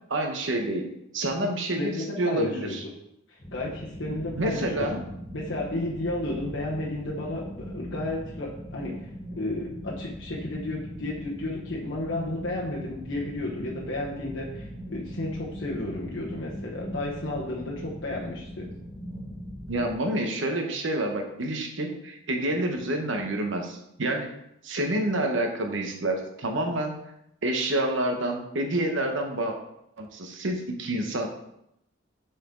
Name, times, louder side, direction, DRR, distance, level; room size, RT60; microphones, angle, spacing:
voice 1, 0.1-0.9 1.1-2.8 4.3-5.0 19.7-24.3 24.6-27.0 27.4-29.6 30.0-31.3, right 1 dB, 70° right, 4 dB, 0.9 m, -28 dB
voice 2, 1.8-2.8 3.3-4.7 5.3-9.1 9.3-18.7, left 2 dB, 65° left, -4 dB, 1.0 m, -33 dB
sound 1, 3.4-19.9, equal, 25° left, 1.0 m, -40 dB
6.8 x 4.3 x 3.8 m, 0.80 s
head